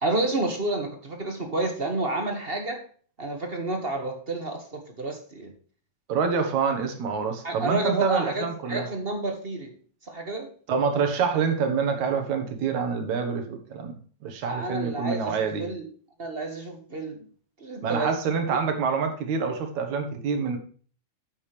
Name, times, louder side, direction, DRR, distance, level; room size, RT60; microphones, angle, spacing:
voice 1, 0.0-2.8 3.2-5.5 7.4-9.7 10.1-10.5 14.4-15.9 16.2-17.2 17.6-18.2 18.5-18.8, right 2 dB, 25° right, 4 dB, 1.3 m, -30 dB
voice 2, 6.1-8.9 10.7-15.7 17.8-20.6, right 5 dB, 75° right, 6 dB, 2.8 m, -26 dB
9.1 x 8.9 x 3.3 m, 0.44 s
omnidirectional pair, 3.4 m